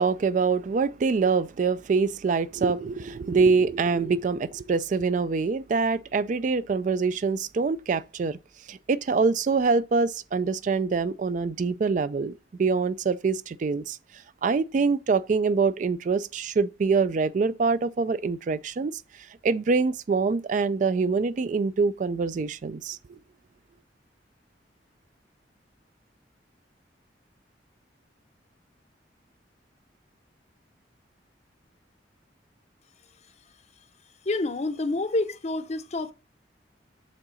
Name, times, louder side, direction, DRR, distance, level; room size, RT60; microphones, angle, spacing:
voice 1, 0.0-8.4 8.7-14.0 14.4-19.0 19.4-23.2, right 4 dB, 45° right, 0.3 m, -25 dB
voice 2, 34.3-36.1, left 2 dB, 40° left, 0.6 m, -28 dB
7.4 x 3.8 x 6.2 m
head